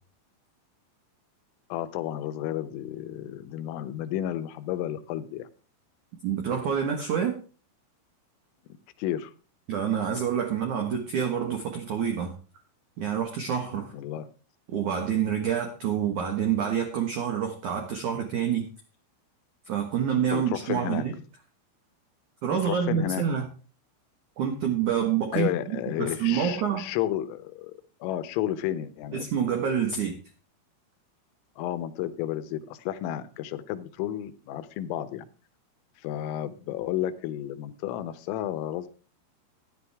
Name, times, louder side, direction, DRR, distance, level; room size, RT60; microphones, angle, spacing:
voice 1, 1.7-5.5 9.0-9.3 13.9-14.3 20.3-21.1 22.5-23.2 25.3-29.3 31.6-35.3 36.0-38.9, left 12 dB, 85° left, 12 dB, 3.5 m, -32 dB
voice 2, 6.2-7.4 9.7-12.3 13.0-13.9 14.7-18.7 19.7-21.1 22.4-23.5 24.4-25.5 26.0-26.8 29.1-30.2, right 8 dB, 70° right, 4 dB, 1.8 m, -27 dB
14.0 x 10.5 x 3.5 m, 0.37 s
omnidirectional pair, 5.8 m